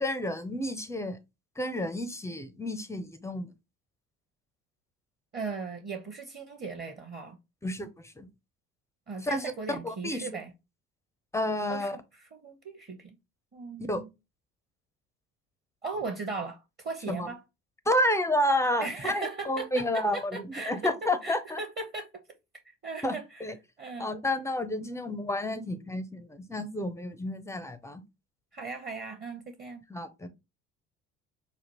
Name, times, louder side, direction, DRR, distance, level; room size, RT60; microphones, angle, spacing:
voice 1, 0.0-1.2 1.6-3.5 7.6-8.3 9.2-10.3 11.3-12.0 13.9-14.0 17.1-17.3 17.9-21.6 23.0-23.1 23.4-23.5 24.0-28.0 29.9-30.3, left 1 dB, 10° left, 0.4 m, -30 dB
voice 2, 5.3-7.4 9.1-10.5 11.7-13.1 13.5-14.1 15.8-17.4 18.8-22.1 22.8-23.5 23.8-24.1 28.5-29.8, right 4 dB, 25° right, 0.8 m, -38 dB
5.1 x 2.3 x 2.9 m
figure-of-eight pair, 55°, 40 cm